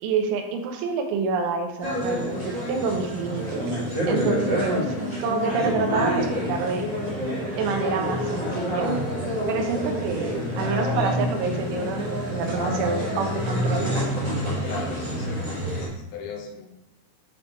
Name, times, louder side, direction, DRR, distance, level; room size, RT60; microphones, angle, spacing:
voice 1, 0.0-3.8 4.1-4.9 5.1-6.9 7.6-8.9 9.5-13.9, right 4 dB, 85° right, 4 dB, 3.2 m, -27 dB
sound 1, 1.8-15.9, equal, 40° right, 0.7 m, -27 dB
voice 2, 14.5-16.7, left 4 dB, 80° left, 1 dB, 3.1 m, -38 dB
7.6 x 3.2 x 4.3 m, 0.94 s
omnidirectional pair, 5.4 m